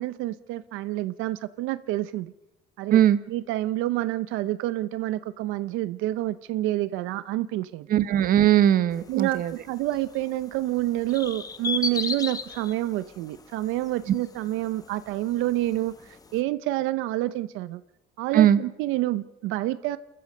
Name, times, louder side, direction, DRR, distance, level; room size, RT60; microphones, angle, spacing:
voice 1, 0.0-2.3 2.8-3.0 3.3-7.9 9.1-17.8 18.2-20.0, right 16 dB, 80° right, 0.8 m, -28 dB
voice 2, 7.9-9.5 14.1-14.2 18.3-18.6, right 11 dB, 45° right, 1.0 m, -19 dB
sound 1, 8.9-16.4, left 4 dB, 20° left, 1.0 m, -37 dB
28.5 x 14.5 x 6.7 m
cardioid pair, 160°, 20 cm